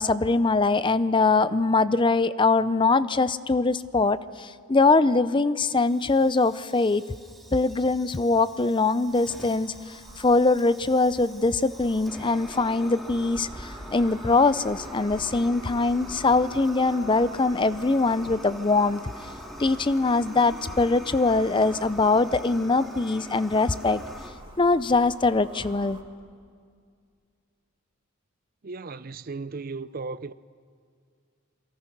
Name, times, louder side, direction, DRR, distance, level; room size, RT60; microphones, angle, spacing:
voice 1, 0.0-7.0 7.5-9.7 10.2-19.0 19.6-24.0 24.6-26.0, left 3 dB, 25° left, 0.6 m, -22 dB
Fire, 5.7-24.3, equal, ahead, 2.2 m, -44 dB
sound 1, 9.0-26.0, right 1 dB, 25° right, 2.1 m, -47 dB
voice 2, 28.6-30.3, right 4 dB, 45° right, 0.6 m, -36 dB
27.5 x 23.0 x 6.0 m
head